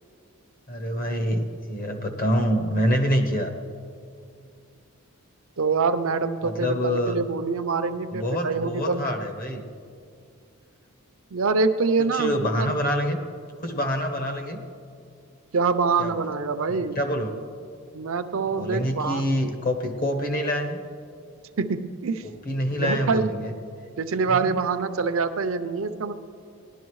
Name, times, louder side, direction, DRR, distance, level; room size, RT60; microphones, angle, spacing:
voice 1, 0.7-3.5 6.4-7.2 8.1-9.6 12.0-13.2 13.6-14.6 16.0-16.1 16.9-17.4 18.5-20.8 22.2-23.5 24.3-24.6, equal, 40° left, 6 dB, 1.0 m, -26 dB
voice 2, 5.6-9.0 11.3-12.8 15.5-17.0 17.9-19.2 21.6-22.3 22.7-23.3 24.0-26.1, right 4 dB, 65° right, 9 dB, 0.6 m, -25 dB
19.0 x 11.5 x 3.1 m, 2.3 s
head